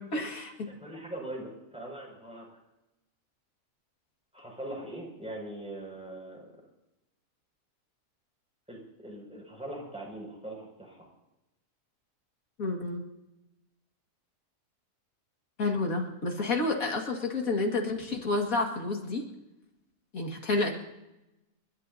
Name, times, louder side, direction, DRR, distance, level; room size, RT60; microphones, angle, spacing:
voice 1, 0.0-0.5 12.6-13.0 15.6-19.2 20.1-20.8, left 3 dB, 85° left, 1 dB, 2.5 m, -30 dB
voice 2, 0.7-2.5 4.3-6.5 8.7-11.1, right 1 dB, 5° right, -2 dB, 6.0 m, -41 dB
29.5 x 12.5 x 2.8 m, 0.94 s
omnidirectional pair, 1.4 m